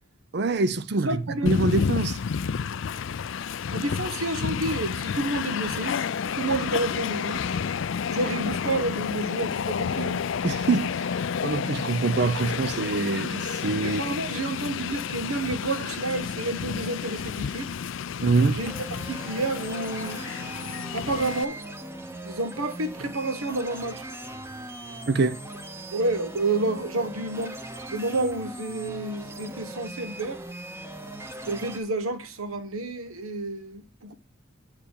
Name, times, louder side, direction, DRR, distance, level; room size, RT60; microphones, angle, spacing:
voice 1, 0.3-2.2 10.4-10.9 11.4-14.0 18.2-18.6 25.1-25.4, right 3 dB, 50° right, 0.5 m, -24 dB
voice 2, 1.1-1.5 3.7-6.0 6.3-7.4 8.1-10.2 13.8-17.7 18.5-18.7 19.1-20.2 20.9-21.6 22.2-24.0 24.9-25.0 25.9-27.6 27.9-30.4 31.5-34.1, right 2 dB, 85° right, 1.3 m, -29 dB
Train, 1.5-21.5, left 6 dB, 60° left, 0.4 m, -30 dB
sound 1, 18.6-31.8, right 1 dB, 10° right, 0.9 m, -39 dB
8.8 x 4.8 x 6.8 m
head